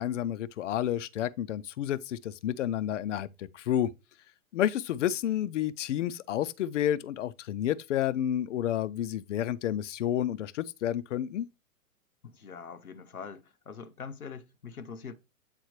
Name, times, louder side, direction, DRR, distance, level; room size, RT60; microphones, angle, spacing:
voice 1, 0.0-3.9 4.5-11.5, left 11 dB, 60° left, 0.6 m, -30 dB
voice 2, 12.2-15.1, left 6 dB, 90° left, 0.9 m, -43 dB
8.3 x 3.8 x 3.0 m
figure-of-eight pair, 115°, 42 cm